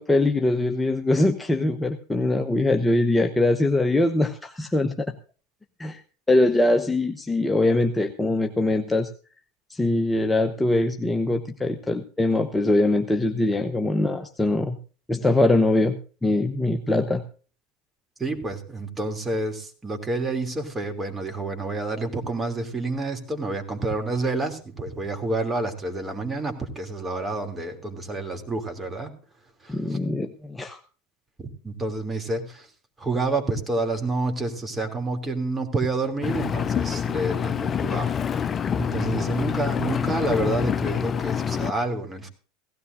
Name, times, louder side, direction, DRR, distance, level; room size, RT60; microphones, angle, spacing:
voice 1, 0.0-5.1 5.8-6.0 6.3-9.1 9.7-14.8 15.1-17.2 29.7-30.8, left 2 dB, 10° left, 6 dB, 0.9 m, -22 dB
voice 2, 18.2-29.1 29.6-30.0 31.6-32.7 33.0-38.4 38.8-42.3, right 2 dB, 15° right, 5 dB, 3.0 m, -28 dB
Engine, 36.2-41.7, left 7 dB, 30° left, 0.5 m, -26 dB
17.0 x 15.5 x 2.6 m, 0.39 s
hypercardioid pair, 80°, 0 cm